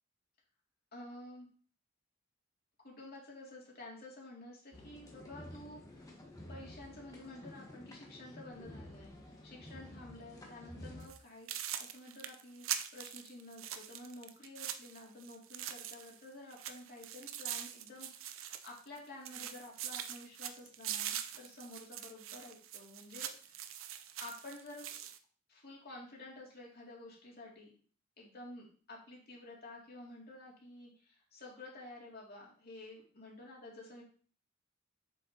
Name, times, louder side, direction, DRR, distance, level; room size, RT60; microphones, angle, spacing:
voice 1, 0.9-1.5 2.8-6.1 6.5-11.5 11.8-23.7 24.2-24.9 25.5-27.7 28.2-34.0, left 2 dB, 50° left, -2 dB, 2.6 m, -51 dB
sound 1, 4.7-11.1, left 1 dB, 20° left, 1.4 m, -51 dB
sound 2, 11.0-11.2 11.5-16.2 16.5-19.0 19.3-25.2, right 10 dB, 85° right, 0.6 m, -43 dB
7.5 x 6.5 x 2.9 m, 0.42 s
head